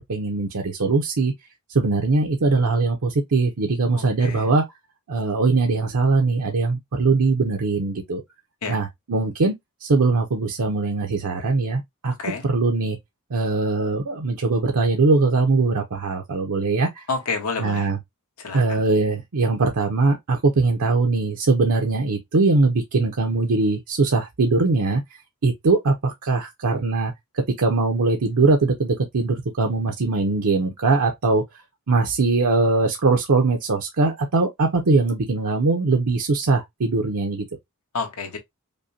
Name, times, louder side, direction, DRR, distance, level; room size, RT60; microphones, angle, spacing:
voice 1, 0.0-1.3 1.7-4.7 5.1-8.2 8.7-9.5 9.8-13.0 13.3-17.0 17.6-18.0 18.5-25.0 25.4-31.4 31.9-37.5, right 3 dB, 75° right, 0.7 m, -21 dB
voice 2, 3.9-4.5 8.6-8.8 12.2-12.5 17.1-17.9 18.4-18.8 37.9-38.4, left 4 dB, 80° left, 1.2 m, -29 dB
5.2 x 2.1 x 2.6 m
head